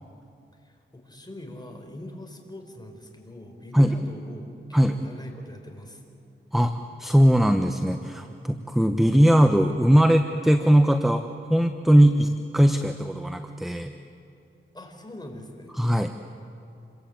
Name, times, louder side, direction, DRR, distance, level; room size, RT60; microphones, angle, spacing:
voice 1, 0.6-6.0 14.7-15.7, left 1 dB, 20° left, 3 dB, 4.7 m, -42 dB
voice 2, 7.0-13.9 15.8-16.1, equal, ahead, 7 dB, 1.0 m, -20 dB
28.0 x 22.5 x 8.9 m, 2.6 s
wide cardioid pair, 85°, 21 cm